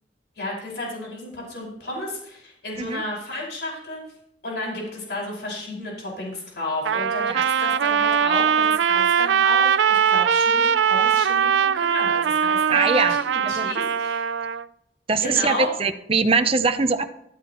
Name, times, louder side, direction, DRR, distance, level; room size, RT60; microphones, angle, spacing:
voice 1, 0.4-4.0 4.4-14.3 15.2-15.7, left 1 dB, 60° left, -3 dB, 5.2 m, -32 dB
Trumpet, 6.8-14.7, right 7 dB, 80° right, 0.4 m, -21 dB
voice 2, 12.7-13.2 13.4-13.7 15.1-17.1, right 4 dB, 30° right, 9 dB, 0.7 m, -22 dB
14.0 x 13.0 x 3.0 m, 0.77 s
head